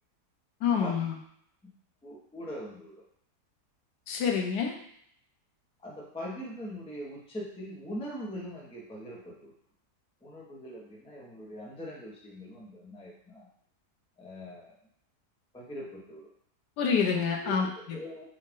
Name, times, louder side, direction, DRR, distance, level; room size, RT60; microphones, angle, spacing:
voice 1, 0.6-1.1 4.1-4.7 16.8-17.7, left 6 dB, 90° left, 2 dB, 1.3 m, -27 dB
voice 2, 2.0-2.9 5.8-9.5 10.2-13.5 14.2-14.7 15.5-16.3 17.4-18.2, equal, 5° left, -4 dB, 0.7 m, -41 dB
5.3 x 2.4 x 3.6 m, 0.69 s
omnidirectional pair, 1.7 m